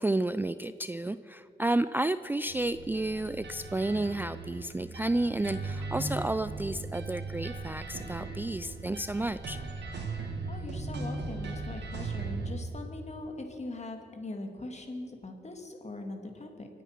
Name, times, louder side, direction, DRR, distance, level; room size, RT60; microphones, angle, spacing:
voice 1, 0.0-9.6, right 2 dB, 10° right, 13 dB, 0.4 m, -31 dB
sound 1, 2.5-12.5, right 3 dB, 80° right, 2.2 m, -38 dB
voice 2, 10.5-16.7, left 2 dB, 40° left, 4 dB, 2.5 m, -41 dB
23.5 x 9.2 x 6.0 m, 2.5 s
cardioid pair, 55°, 18 cm